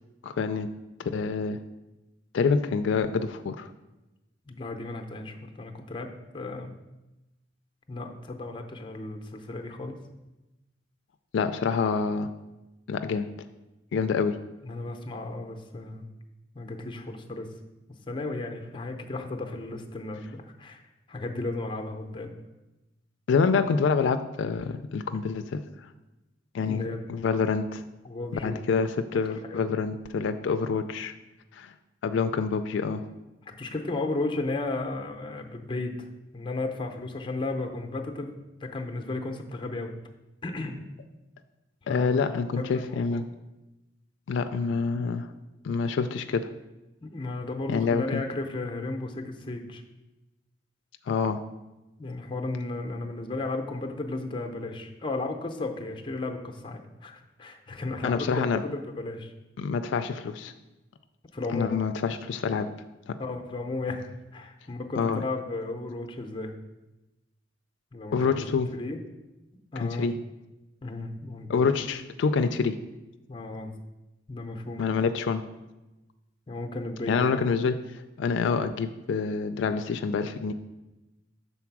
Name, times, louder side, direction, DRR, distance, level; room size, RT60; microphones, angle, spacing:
voice 1, 0.2-0.7 1.0-1.6 2.3-3.7 11.3-12.3 12.9-13.3 13.9-14.4 23.3-25.6 26.5-27.8 28.4-31.1 31.5-31.7 32.0-33.0 41.9-43.3 44.3-45.3 45.6-46.5 47.7-48.2 51.1-51.4 58.0-58.6 59.6-60.5 61.5-62.7 63.1-63.2 65.0-65.2 68.1-68.7 69.8-70.2 71.5-72.8 74.8-75.4 77.1-80.5, left 5 dB, 80° left, 9 dB, 0.3 m, -27 dB
voice 2, 4.4-6.1 6.3-6.7 7.9-10.0 14.6-16.1 16.5-17.5 18.1-20.8 21.1-22.3 26.6-27.0 28.0-28.8 29.1-29.2 29.5-29.8 33.5-36.0 36.3-39.9 40.4-40.8 41.9-42.1 42.6-43.3 47.0-49.8 52.0-59.3 61.3-61.8 63.2-66.5 67.9-69.0 69.7-70.1 70.8-71.6 73.3-73.8 74.3-75.0 76.5-77.4, left 2 dB, 25° left, 4 dB, 0.6 m, -34 dB
6.0 x 4.0 x 5.9 m, 1.0 s
head